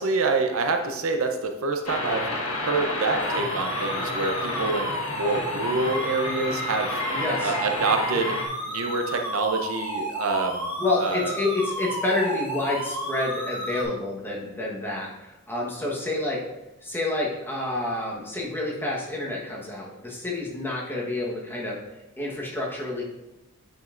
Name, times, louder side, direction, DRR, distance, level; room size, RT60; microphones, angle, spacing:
voice 1, 0.0-2.2 2.6-7.0 7.4-8.3 8.6-10.7 11.0-11.3, right 3 dB, 65° right, 5 dB, 0.6 m, -26 dB
sound 1, 1.9-8.5, left 1 dB, 85° left, 1.4 m, -31 dB
sound 2, 3.2-13.8, equal, 10° right, 2.2 m, -32 dB
voice 2, 7.1-7.5 10.8-16.4 16.8-23.0, left 2 dB, 10° left, -3 dB, 1.2 m, -29 dB
9.2 x 5.3 x 2.5 m, 0.97 s
head